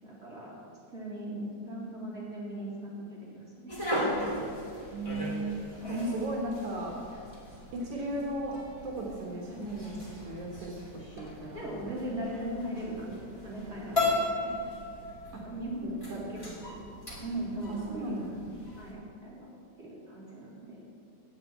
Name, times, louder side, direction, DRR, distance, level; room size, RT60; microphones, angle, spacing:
voice 1, 0.0-0.5 0.9-4.3 11.5-14.1 14.4-14.7 15.4-16.8 17.2-18.1 18.8-19.5 19.8-20.8, right 1 dB, 20° right, -7 dB, 3.3 m, -39 dB
sound 1, 3.7-18.9, left 1 dB, 10° left, 1.8 m, -37 dB
voice 2, 4.9-7.0 7.7-10.9 11.2-11.6 15.8-16.9 17.7-18.5, right 1 dB, 70° right, -2 dB, 2.8 m, -36 dB
9.4 x 8.1 x 8.4 m, 2.6 s
omnidirectional pair, 3.5 m